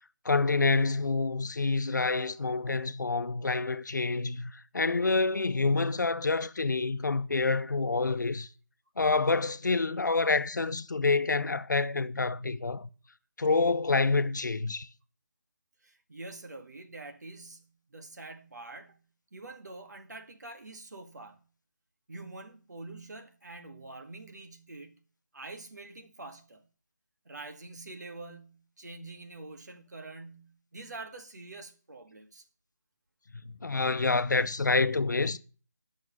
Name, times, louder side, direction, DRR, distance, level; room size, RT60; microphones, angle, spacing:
voice 1, 0.2-8.5 9.0-12.9 13.4-14.9 33.4-35.4, left 3 dB, 85° left, 0.8 m, -27 dB
voice 2, 15.8-19.0 19.3-21.4 22.1-25.0 25.3-26.6 27.3-32.4, right 2 dB, 70° right, 1.8 m, -46 dB
9.6 x 6.4 x 6.1 m
figure-of-eight pair, 170°, 10 cm